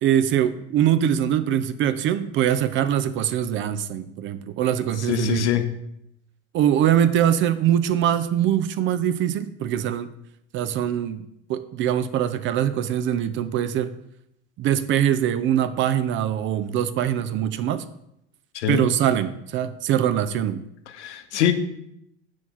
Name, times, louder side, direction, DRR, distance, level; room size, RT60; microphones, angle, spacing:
voice 1, 0.0-5.5 6.5-10.1 10.5-13.9 14.6-17.8 18.7-20.6, right 10 dB, 35° right, 13 dB, 0.4 m, -23 dB
voice 2, 5.1-5.7 18.5-18.8 20.9-21.5, left 11 dB, 80° left, 8 dB, 0.8 m, -23 dB
5.9 x 3.0 x 5.6 m, 0.79 s
hypercardioid pair, 95°, 34 cm